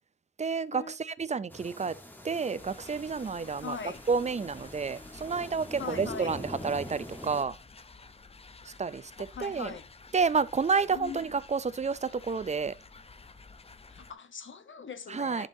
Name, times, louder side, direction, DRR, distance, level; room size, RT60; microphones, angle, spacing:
voice 1, 0.4-2.0 2.2-3.8 4.1-7.6 8.6-9.7 10.1-12.8 15.1-15.5, right 5 dB, 35° right, 0.4 m, -30 dB
sound 1, 1.5-7.4, left 1 dB, 10° left, 1.2 m, -44 dB
sound 2, 2.6-14.1, left 4 dB, 30° left, 0.6 m, -52 dB
voice 2, 3.6-4.0 5.8-6.4 9.2-9.9 10.9-11.2 13.9-15.5, left 5 dB, 80° left, 0.9 m, -40 dB
10.5 x 5.3 x 2.7 m
wide cardioid pair, 115°, 20 cm